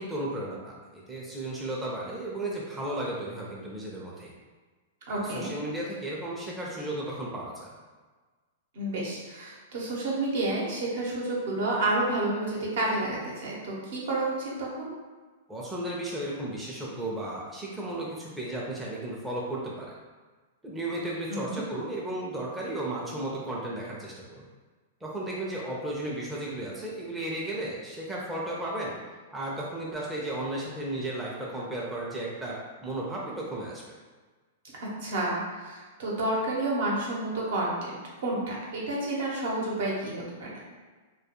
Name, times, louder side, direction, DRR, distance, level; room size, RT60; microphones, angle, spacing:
voice 1, 0.0-4.3 5.1-7.7 15.5-19.9 20.6-24.4 25.0-28.9 29.3-34.0, right 1 dB, 10° right, -5 dB, 0.4 m, -34 dB
voice 2, 5.1-5.5 8.7-14.9 21.3-21.6 34.8-40.6, right 2 dB, 65° right, -4 dB, 0.8 m, -30 dB
2.2 x 2.2 x 2.8 m, 1.4 s
hypercardioid pair, 130°, 0 cm